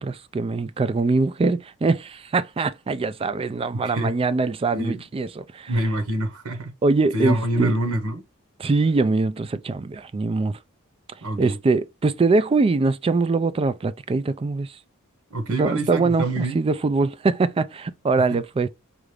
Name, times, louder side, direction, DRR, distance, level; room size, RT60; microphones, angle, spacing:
voice 1, 0.0-5.7 6.8-7.7 8.6-10.6 11.4-14.7 15.5-18.7, right 3 dB, 25° right, 0.3 m, -23 dB
voice 2, 3.7-4.1 4.7-5.0 5.7-6.7 7.1-8.2 11.2-11.6 15.3-16.6 18.3-18.4, right 1 dB, 80° right, 1.1 m, -26 dB
4.7 x 2.5 x 3.3 m
head